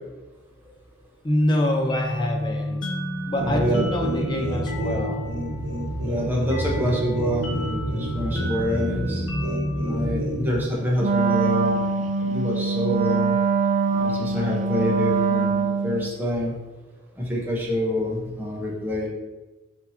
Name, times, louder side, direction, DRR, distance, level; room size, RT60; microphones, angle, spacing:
voice 1, 1.2-2.9 3.2-5.2, left 1 dB, 20° left, 1 dB, 0.5 m, -25 dB
sound 1, 1.9-11.3, equal, 75° left, 0.8 m, -32 dB
voice 2, 3.4-3.8 6.0-9.2 9.9-11.8 12.2-13.4 13.9-16.5 17.3-19.1, equal, 10° right, -4 dB, 0.9 m, -26 dB
sound 2, 3.4-10.6, equal, 85° right, 0.9 m, -29 dB
Wind instrument woodwind instrument, 11.0-16.1, right 4 dB, 35° right, 0.3 m, -23 dB
6.0 x 2.9 x 2.7 m, 1.1 s
head